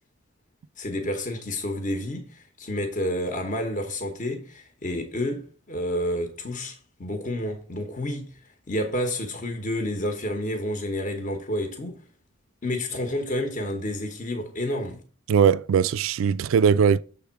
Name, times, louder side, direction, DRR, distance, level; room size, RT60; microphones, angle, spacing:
voice 1, 0.8-8.3 8.7-12.0 12.6-15.0, left 1 dB, 40° left, 1.0 m, -30 dB
voice 2, 15.3-17.0, right 7 dB, 70° right, 0.3 m, -20 dB
6.9 x 3.5 x 5.7 m
head